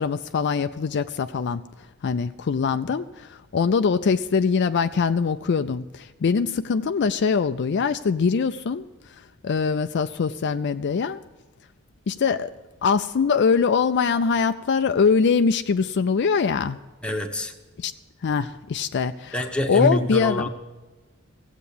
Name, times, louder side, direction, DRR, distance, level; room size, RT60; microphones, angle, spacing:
voice 1, 0.0-1.6 2.0-8.9 9.4-11.2 12.1-12.5 12.8-16.8 17.8-17.9 18.2-19.4 19.7-20.4, left 5 dB, 55° left, 10 dB, 0.4 m, -23 dB
voice 2, 17.0-17.5 19.3-20.5, left 1 dB, 5° left, 3 dB, 1.1 m, -25 dB
16.0 x 8.1 x 8.4 m, 1.2 s
head